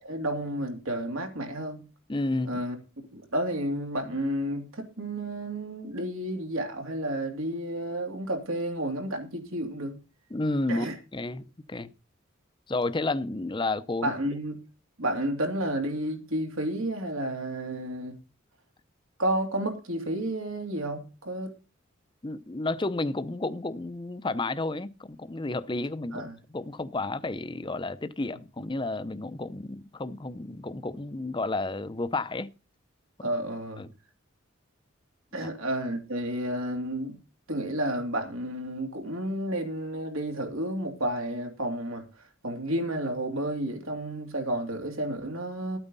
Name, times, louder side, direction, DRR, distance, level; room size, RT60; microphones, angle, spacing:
voice 1, 0.0-1.9 2.4-2.8 3.1-10.0 10.7-10.9 14.0-14.6 15.0-18.2 19.2-21.5 26.1-26.3 33.2-33.8 35.3-37.2 37.5-42.1 42.4-45.8, right 1 dB, 85° right, 2.8 m, -31 dB
voice 2, 2.1-2.6 10.3-10.9 11.1-11.9 12.7-14.1 22.2-32.5 33.8-33.9 35.3-35.5, left 2 dB, 25° left, 0.6 m, -31 dB
13.5 x 8.9 x 4.0 m
head